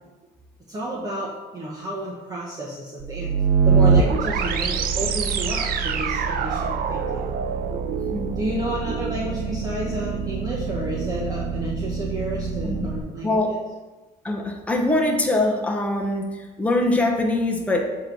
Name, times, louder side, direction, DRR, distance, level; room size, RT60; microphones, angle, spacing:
voice 1, 0.7-3.3 3.6-7.3 8.4-13.6, right 1 dB, 20° right, -4 dB, 1.1 m, -31 dB
sound 1, 3.0-13.0, right 5 dB, 60° right, 0.5 m, -24 dB
voice 2, 13.2-13.5 14.2-17.9, left 2 dB, 10° left, 0 dB, 0.9 m, -23 dB
7.4 x 3.1 x 5.9 m, 1.2 s
cardioid pair, 110°, 17 cm